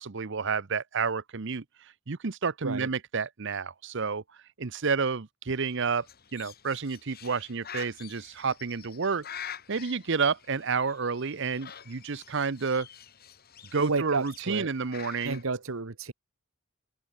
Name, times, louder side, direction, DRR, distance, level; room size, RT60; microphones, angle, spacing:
voice 1, 0.0-1.6 2.1-4.2 4.6-6.1 6.3-12.9 13.7-15.4, right 5 dB, 60° right, 0.8 m, -30 dB
Bird, 5.5-15.4, left 8 dB, 45° left, 3.2 m, -47 dB
voice 2, 13.8-14.7 15.2-16.1, right 4 dB, 75° right, 1.2 m, -31 dB
open air
head